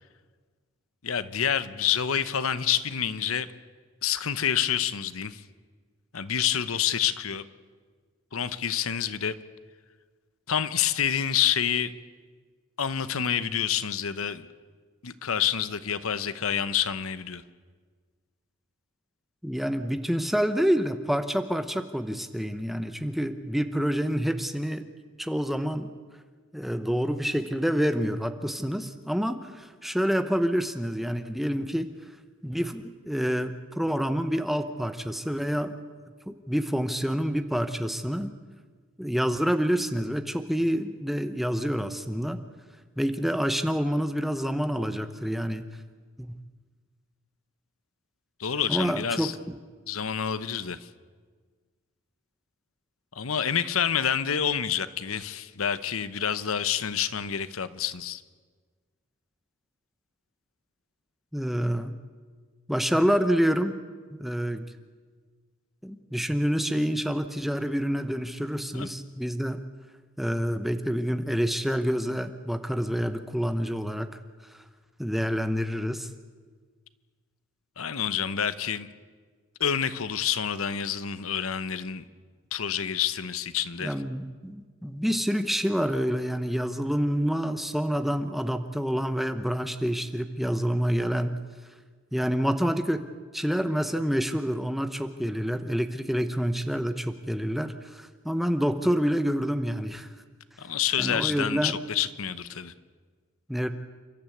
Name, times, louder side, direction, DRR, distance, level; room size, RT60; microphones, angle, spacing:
voice 1, 1.0-3.5 4.0-5.4 6.1-7.4 8.3-9.3 10.5-11.9 12.8-14.4 15.0-17.4 48.4-49.3 49.9-50.8 53.2-58.2 68.7-68.9 77.8-78.9 79.6-82.0 82.5-83.9 100.6-102.7, left 8 dB, 85° left, 0.9 m, -28 dB
voice 2, 19.4-24.8 25.2-25.9 26.5-31.9 32.4-35.7 36.3-38.3 39.0-42.4 43.0-45.7 46.2-46.4 48.7-49.5 61.3-61.9 62.7-63.8 64.2-64.7 65.8-69.6 70.2-74.1 75.0-76.1 83.8-91.4 92.1-93.1 93.3-100.1 101.0-101.8 103.5-103.7, equal, ahead, 0.9 m, -27 dB
29.0 x 12.5 x 8.5 m
head